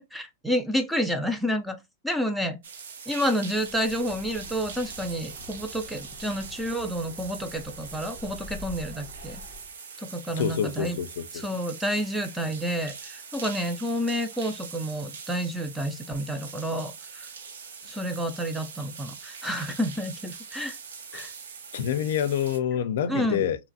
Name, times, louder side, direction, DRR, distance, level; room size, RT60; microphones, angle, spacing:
voice 1, 0.1-1.8 2.0-2.6 3.1-9.4 10.0-11.0 11.3-17.3 17.9-20.8 21.1-21.3 23.1-23.4, equal, ahead, 0.3 m, -29 dB
sound 1, 2.6-22.6, right 6 dB, 85° right, 0.6 m, -43 dB
Bird, 3.5-9.8, left 1 dB, 55° right, 0.8 m, -46 dB
voice 2, 10.3-11.4 21.1-21.3 21.7-23.6, left 9 dB, 70° left, 0.4 m, -27 dB
2.9 x 2.4 x 2.6 m
supercardioid pair, 150°, 0 cm